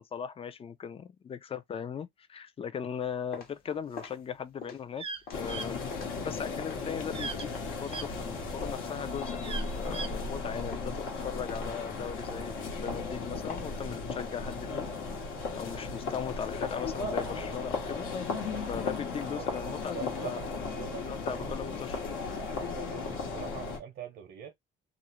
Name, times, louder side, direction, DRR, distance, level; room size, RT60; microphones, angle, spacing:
voice 1, 0.0-5.0 5.3-5.8 6.2-14.9 15.5-18.1 18.7-20.4 21.1-22.0, left 7 dB, 25° left, 0.4 m, -38 dB
sound 1, 3.0-8.2 8.6-10.4 10.7-11.1 11.5-14.3, left 5 dB, 45° left, 0.8 m, -48 dB
sound 2, 5.0-5.2 5.5-5.7 7.1-7.5 7.9-8.1 9.4-10.1, right 4 dB, 25° right, 0.5 m, -38 dB
sound 3, 5.3-23.8, left 4 dB, 80° left, 1.0 m, -36 dB
voice 2, 19.9-22.1 22.4-24.5, right 9 dB, 65° right, 0.7 m, -44 dB
2.4 x 2.0 x 2.9 m
cardioid pair, 100°, 21 cm